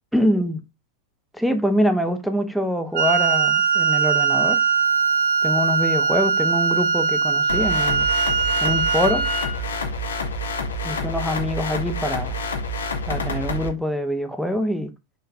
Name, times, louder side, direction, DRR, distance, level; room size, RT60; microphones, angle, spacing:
voice 1, 0.1-0.6 1.3-4.6 5.4-8.1 8.6-9.3 10.8-12.4 13.1-14.9, equal, ahead, 0.6 m, -24 dB
Wind instrument woodwind instrument, 2.9-9.6, right 5 dB, 55° right, 0.9 m, -21 dB
sound 1, 7.5-13.7, left 1 dB, 65° left, 0.6 m, -28 dB
3.9 x 3.2 x 2.7 m
figure-of-eight pair, 90°, 0 cm